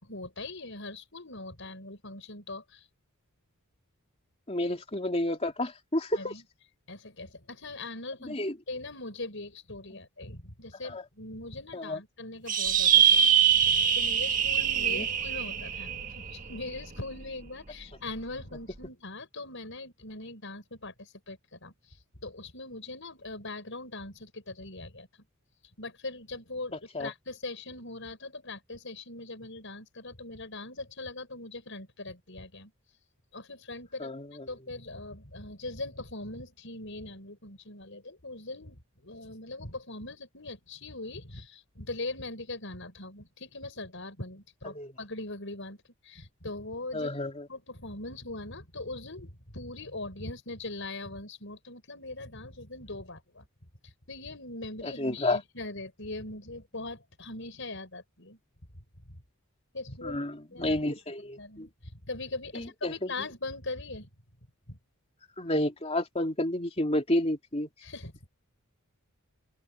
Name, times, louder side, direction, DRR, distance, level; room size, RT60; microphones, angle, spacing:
voice 1, 0.0-2.9 6.2-6.4 6.9-8.4 8.7-21.7 22.2-25.1 25.8-32.7 33.3-34.1 34.5-45.8 46.0-47.1 47.5-53.5 53.8-58.4 59.1-59.2 59.7-60.2 60.5-60.8 61.4-64.1 64.7-64.8 67.8-68.1, left 2 dB, 60° left, 6.9 m, -41 dB
voice 2, 4.5-6.3 8.3-8.5 10.8-11.0 11.7-12.0 14.9-15.0 26.9-27.1 34.0-34.3 44.6-44.9 46.9-47.4 54.8-55.4 60.0-61.7 62.5-63.1 65.4-67.7, left 1 dB, 30° left, 3.2 m, -30 dB
sound 1, 12.5-17.2, right 8 dB, 40° right, 1.6 m, -24 dB
open air
head